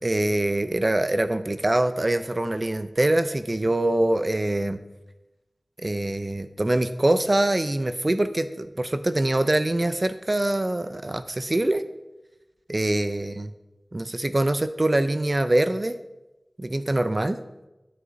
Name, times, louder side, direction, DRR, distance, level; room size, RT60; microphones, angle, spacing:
voice 1, 0.0-4.8 5.8-11.8 12.7-13.5 13.9-16.0 16.6-17.4, right 1 dB, 40° right, 11 dB, 0.4 m, -24 dB
12.0 x 6.3 x 2.6 m, 1.0 s
wide cardioid pair, 40°, 0 cm